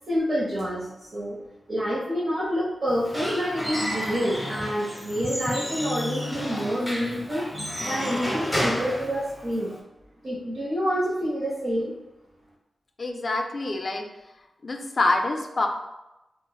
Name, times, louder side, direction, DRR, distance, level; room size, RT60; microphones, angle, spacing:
voice 1, 0.1-1.4 1.7-7.5 7.7-9.7 10.2-11.9, equal, 50° right, -8 dB, 0.8 m, -27 dB
Squeak / Wood, 2.9-9.8, equal, ahead, 0.7 m, -31 dB
voice 2, 13.0-14.1 14.6-15.7, left 2 dB, 45° left, 3 dB, 0.4 m, -26 dB
4.2 x 2.0 x 2.2 m, 0.97 s
wide cardioid pair, 110°, 0 cm